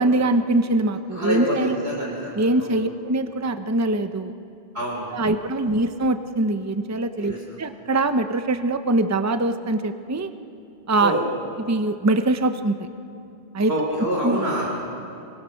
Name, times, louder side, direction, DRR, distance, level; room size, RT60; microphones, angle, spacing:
voice 1, 0.0-1.8 2.4-4.3 5.1-7.3 7.6-10.3 10.9-11.1 11.6-12.9 13.5-13.7 14.2-14.4, right 2 dB, 15° right, 9 dB, 0.7 m, -23 dB
voice 2, 1.1-2.8 4.7-5.2 7.2-7.4 11.0-11.2 13.7-14.7, right 1 dB, 70° right, -3 dB, 4.0 m, -26 dB
27.0 x 22.0 x 6.4 m, 2.6 s
omnidirectional pair, 1.1 m